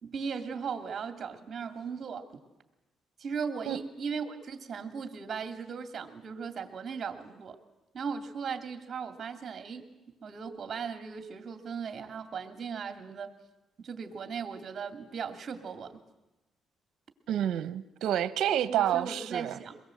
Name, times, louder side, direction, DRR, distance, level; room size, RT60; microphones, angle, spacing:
voice 1, 0.0-2.3 3.2-7.6 7.9-9.8 10.2-13.3 13.8-16.0 18.7-19.8, right 6 dB, 50° right, 2.6 m, -37 dB
voice 2, 17.3-19.6, right 11 dB, 75° right, 1.0 m, -29 dB
23.5 x 21.0 x 7.8 m
cardioid pair, 90°, 0 cm